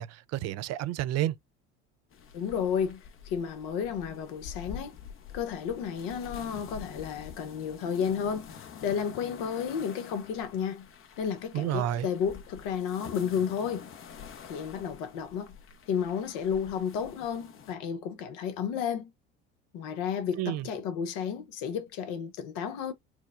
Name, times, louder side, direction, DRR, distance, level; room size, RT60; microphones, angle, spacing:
voice 1, 0.0-1.3 11.5-12.1 20.4-20.7, right 13 dB, 50° right, 0.4 m, -30 dB
sound 1, 2.1-17.7, left 7 dB, 40° left, 0.7 m, -47 dB
voice 2, 2.3-3.0 3.3-5.0 5.3-10.9 11.2-13.9 14.4-15.5 15.9-19.1 19.7-22.9, left 7 dB, 65° left, 0.8 m, -32 dB
4.5 x 2.1 x 2.4 m
hypercardioid pair, 70°, 34 cm